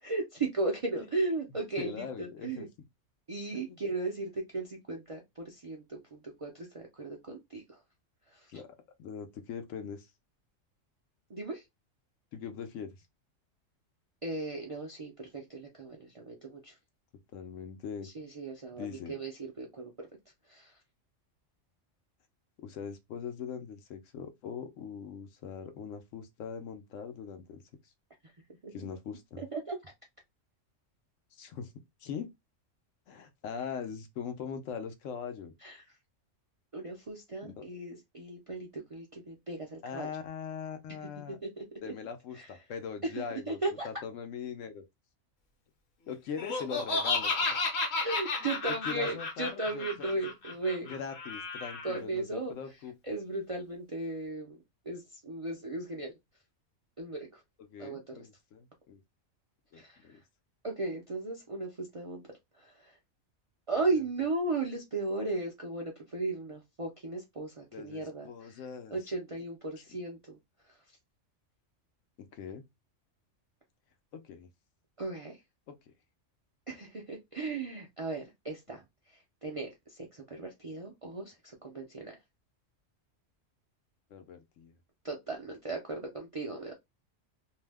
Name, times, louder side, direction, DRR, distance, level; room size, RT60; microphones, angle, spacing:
voice 1, 0.0-2.7 3.3-7.6 8.3-8.4 11.3-11.6 14.2-16.7 18.0-19.3 19.6-19.9 20.5-20.7 28.6-28.7 29.4-29.9 35.6-35.8 36.7-40.1 41.4-41.6 42.3-42.5 43.0-43.9 48.0-50.9 51.8-52.5 53.0-54.6 54.9-56.1 57.0-57.4 57.8-58.3 59.7-60.0 60.6-62.2 62.6-63.0 63.7-68.5 68.9-70.4 75.0-75.4 76.7-78.8 79.4-82.1 85.0-86.7, right 3 dB, 50° right, 0.4 m, -36 dB
voice 2, 1.8-2.7 3.5-3.8 8.5-8.7 9.0-10.1 12.3-12.9 17.3-18.1 18.8-19.2 22.6-27.6 28.7-29.4 31.3-31.7 32.0-32.3 33.1-35.5 37.4-37.7 39.8-41.4 41.8-44.8 46.1-47.3 48.8-50.2 50.8-53.2 57.6-59.0 59.7-60.2 63.7-64.0 67.7-69.2 69.9-70.0 72.2-72.6 74.1-74.5 75.7-75.9 84.1-84.7, left 7 dB, 80° left, 1.0 m, -41 dB
Laughter, 46.4-52.0, left 3 dB, 60° left, 1.1 m, -33 dB
2.7 x 2.1 x 3.3 m
omnidirectional pair, 1.3 m